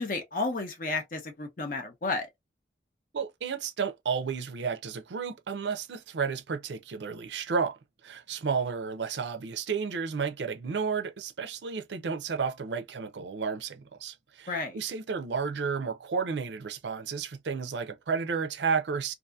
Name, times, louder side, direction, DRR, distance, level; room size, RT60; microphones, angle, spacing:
voice 1, 0.0-2.3 14.5-14.8, left 3 dB, 50° left, 0.6 m, -32 dB
voice 2, 3.1-7.8 8.0-19.1, right 5 dB, 80° right, 0.5 m, -32 dB
2.7 x 2.5 x 2.3 m
head